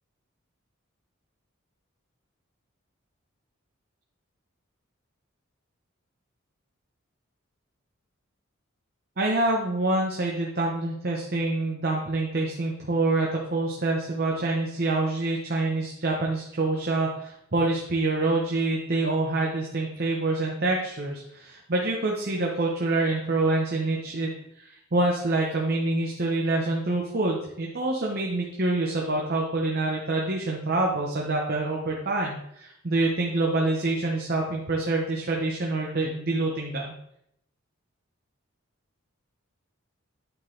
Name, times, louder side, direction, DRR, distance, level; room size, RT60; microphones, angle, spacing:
voice 1, 9.2-36.9, right 2 dB, 50° right, -1 dB, 0.9 m, -26 dB
9.2 x 3.9 x 3.9 m, 0.75 s
head